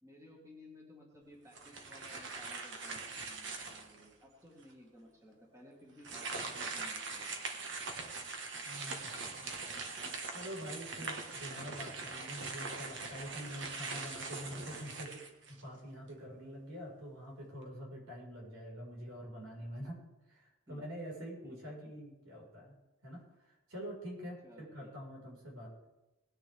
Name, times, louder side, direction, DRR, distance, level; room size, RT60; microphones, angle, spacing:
voice 1, 0.0-7.9 20.7-20.8 21.4-21.9 24.4-24.9, left 1 dB, 15° right, -1 dB, 1.9 m, -57 dB
sound 1, 1.5-4.1 4.6-4.7 6.0-15.8, right 4 dB, 60° right, 1.6 m, -42 dB
voice 2, 8.6-9.8 10.3-15.2 15.5-20.0 20.3-22.8 23.0-25.7, equal, 90° right, -2 dB, 5.2 m, -46 dB
19.0 x 10.0 x 3.6 m, 1.0 s
head